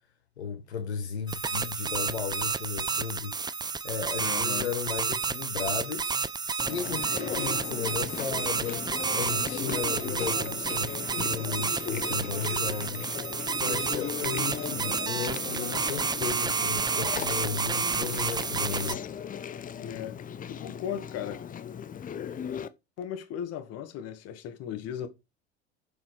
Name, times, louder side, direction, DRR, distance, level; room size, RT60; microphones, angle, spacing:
voice 1, 0.4-3.4 3.8-6.2 6.6-8.8 9.1-19.0, left 6 dB, 75° left, 1.5 m, -35 dB
sound 1, 1.3-18.9, right 5 dB, 15° right, 0.6 m, -30 dB
voice 2, 4.2-4.7 19.8-20.2 20.5-21.4 23.0-25.1, left 9 dB, 50° left, 2.1 m, -36 dB
Chewing mastication, 6.6-22.7, left 8 dB, 25° left, 0.9 m, -37 dB
7.2 x 7.1 x 5.0 m
figure-of-eight pair, 70°, 33 cm